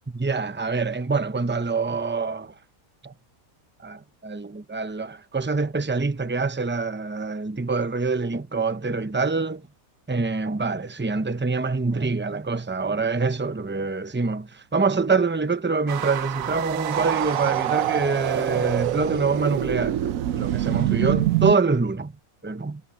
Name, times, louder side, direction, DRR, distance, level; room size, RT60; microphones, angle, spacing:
voice 1, 0.1-2.5 3.0-3.1 3.8-9.7 10.1-22.1 22.4-22.8, right 4 dB, 15° right, 0.3 m, -25 dB
sound 1, 15.9-21.6, right 13 dB, 70° right, 1.0 m, -25 dB
omnidirectional pair, 1.6 m